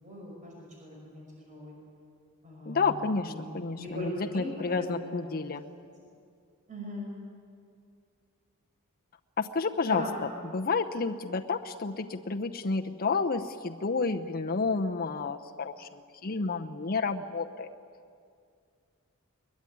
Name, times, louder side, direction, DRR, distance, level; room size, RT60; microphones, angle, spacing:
voice 1, 0.0-1.7 2.4-2.9 3.2-5.6 6.7-7.2 9.9-10.2, left 1 dB, 35° right, -2 dB, 5.8 m, -39 dB
voice 2, 2.7-5.6 9.4-10.0 10.5-17.7, left 4 dB, 45° left, 4 dB, 0.8 m, -30 dB
22.0 x 21.5 x 9.5 m, 2.4 s
head